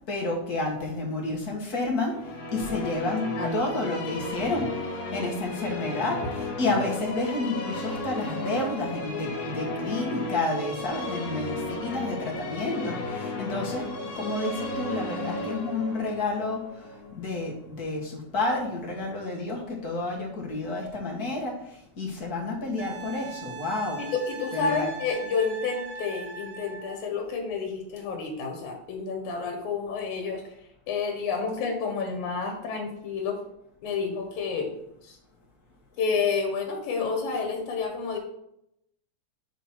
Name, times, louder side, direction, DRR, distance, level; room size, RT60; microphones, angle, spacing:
voice 1, 0.1-2.2 2.5-4.7 5.1-16.6 17.1-21.5 22.0-24.0 24.5-24.9, left 2 dB, 45° left, -2 dB, 1.4 m, -30 dB
sound 1, 2.0-18.1, left 2 dB, 65° left, 2.3 m, -34 dB
voice 2, 3.1-3.6 24.0-33.4 33.8-34.7 35.0-35.2 36.0-38.2, left 5 dB, 85° left, 2 dB, 2.7 m, -30 dB
Wind instrument woodwind instrument, 22.8-27.0 29.7-29.8, right 4 dB, 75° right, 0.9 m, -40 dB
7.1 x 3.7 x 5.9 m, 0.77 s
omnidirectional pair, 3.3 m